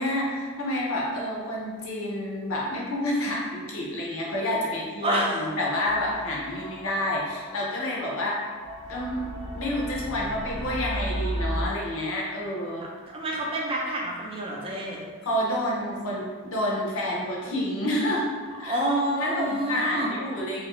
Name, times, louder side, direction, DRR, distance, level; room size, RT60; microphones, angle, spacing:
voice 1, 0.0-8.4 8.9-9.2 9.5-12.9 15.2-18.3 18.6-18.8 19.2-20.7, left 1 dB, 65° left, -3 dB, 0.7 m, -29 dB
voice 2, 5.0-5.4 13.1-15.0 18.6-20.1, right 1 dB, 25° right, -3 dB, 0.5 m, -28 dB
sound 1, 5.8-11.7, equal, 75° right, 0.7 m, -35 dB
2.8 x 2.4 x 3.0 m, 1.5 s
head